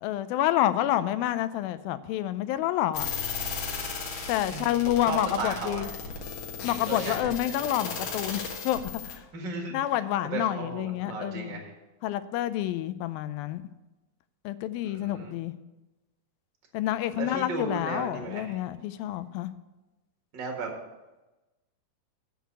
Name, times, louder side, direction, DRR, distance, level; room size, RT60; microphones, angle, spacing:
voice 1, 0.0-3.1 4.3-5.9 6.6-9.2 9.7-11.6 12.0-13.6 14.5-15.5 16.7-19.5, left 13 dB, 90° left, 13 dB, 2.4 m, -28 dB
sound 1, 2.9-9.2, left 5 dB, 70° left, 3.0 m, -35 dB
voice 2, 4.5-4.8 5.1-5.9 6.9-7.5 9.3-9.8 10.3-11.7 14.8-15.3 17.1-18.6 20.3-20.7, right 4 dB, 40° right, 2 dB, 1.8 m, -35 dB
8.1 x 6.5 x 8.1 m, 1.1 s
omnidirectional pair, 4.1 m